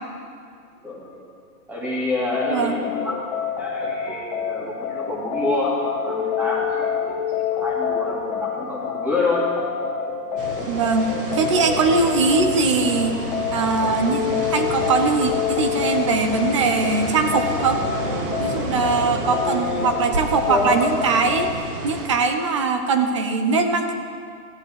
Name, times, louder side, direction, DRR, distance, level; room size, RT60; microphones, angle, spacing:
voice 1, 0.8-1.2 1.7-3.3 3.6-7.0 7.5-9.5 10.3-10.7 11.4-12.0 19.0-20.0 20.5-20.8, left 2 dB, 5° right, -5 dB, 2.2 m, -27 dB
sound 1, 2.2-21.5, left 7 dB, 25° left, 1.1 m, -28 dB
voice 2, 2.5-2.8 10.7-13.2 13.5-17.8 18.4-21.5 21.8-23.9, right 4 dB, 20° right, 6 dB, 0.7 m, -21 dB
sound 2, 10.4-22.1, right 2 dB, 35° right, 2.1 m, -30 dB
14.5 x 8.2 x 8.8 m, 2.3 s
hypercardioid pair, 160°, 46 cm